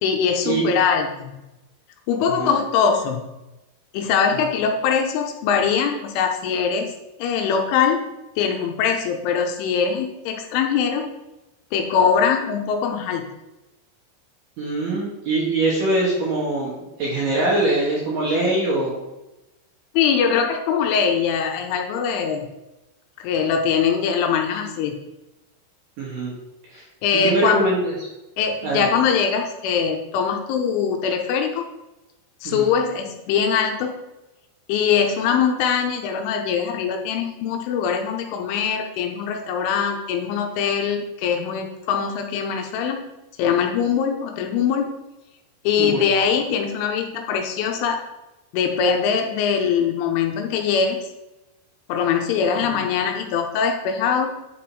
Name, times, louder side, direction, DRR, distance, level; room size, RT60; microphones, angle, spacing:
voice 1, 0.0-1.4 2.1-3.3 3.9-6.9 7.2-8.1 8.4-11.1 11.7-13.3 19.9-22.5 23.2-25.0 27.0-27.7 28.4-31.6 32.4-34.0 34.7-43.1 43.4-44.9 45.6-48.0 48.5-51.0 51.9-54.4, left 6 dB, 85° left, 3 dB, 3.1 m, -22 dB
voice 2, 14.6-19.0 26.0-26.3 26.7-26.8 27.1-27.9 28.6-28.9 32.4-32.7 45.8-46.0 52.7-52.8, right 2 dB, 60° right, -5 dB, 2.4 m, -23 dB
10.0 x 5.1 x 4.7 m, 1.0 s
omnidirectional pair, 5.8 m